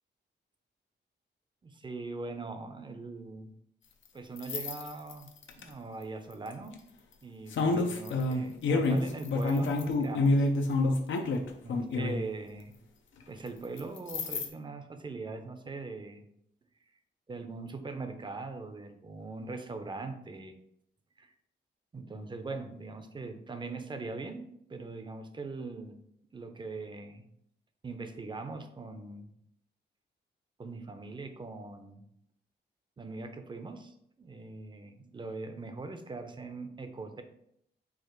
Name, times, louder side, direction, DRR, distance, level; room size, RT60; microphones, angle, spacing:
voice 1, 1.6-3.5 4.1-5.3 5.6-6.8 7.2-10.5 11.6-12.8 13.3-16.3 17.3-20.5 21.2-21.3 21.9-26.0 26.3-27.2 27.8-29.3 30.6-32.0 33.0-37.2, right 3 dB, 25° right, 7 dB, 0.5 m, -41 dB
sound 1, 4.4-5.6 6.5-6.7 7.5-12.2 13.8-14.5, left 2 dB, 85° left, 0.6 m, -28 dB
4.7 x 2.5 x 4.5 m, 0.72 s
wide cardioid pair, 120°, 19 cm